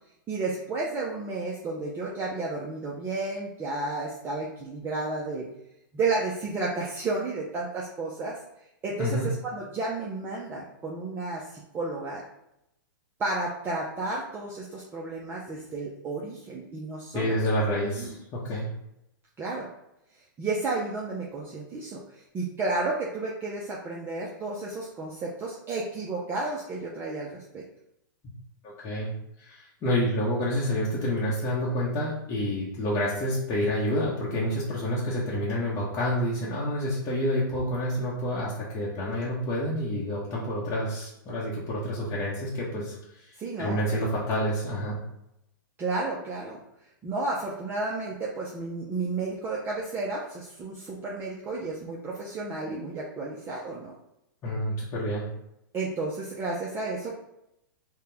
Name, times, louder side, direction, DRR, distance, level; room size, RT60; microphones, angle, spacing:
voice 1, 0.3-5.5 5.9-8.4 8.8-12.2 13.2-17.6 18.0-18.1 19.4-19.7 20.4-27.6 43.4-43.8 45.8-46.6 47.0-53.9 55.7-57.2, right 3 dB, 20° right, -4 dB, 0.6 m, -32 dB
voice 2, 17.1-18.7 28.6-29.1 29.4-45.0 54.4-55.2, equal, 25° left, -7 dB, 0.9 m, -28 dB
4.0 x 2.2 x 3.4 m, 0.82 s
hypercardioid pair, 125°, 12 cm